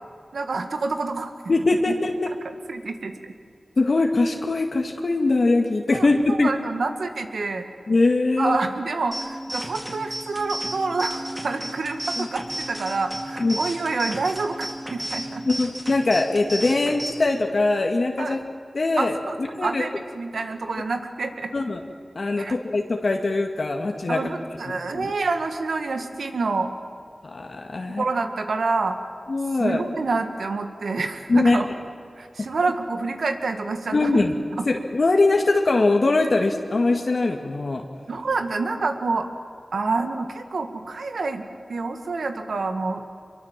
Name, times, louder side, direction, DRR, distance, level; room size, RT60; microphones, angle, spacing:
voice 1, 0.3-1.3 1.9-2.0 2.4-3.3 5.9-7.7 8.4-15.4 18.2-18.4 19.0-21.5 22.4-22.5 24.1-26.7 27.8-29.0 29.6-31.7 32.2-34.2 34.6-34.7 38.1-39.3 39.7-43.0, right 3 dB, 85° right, 6 dB, 1.9 m, -27 dB
voice 2, 1.5-2.3 3.8-6.5 7.9-8.6 12.2-12.3 13.4-13.6 15.5-18.4 18.7-19.8 21.5-21.8 22.2-24.2 24.9-25.1 27.2-28.0 29.3-29.8 31.3-31.6 33.9-34.3 34.7-37.9, left 3 dB, 60° left, 3 dB, 1.9 m, -22 dB
sound 1, 9.1-17.1, right 1 dB, 25° right, 4.8 m, -33 dB
24.5 x 23.5 x 7.5 m, 2.4 s
wide cardioid pair, 55°, 0 cm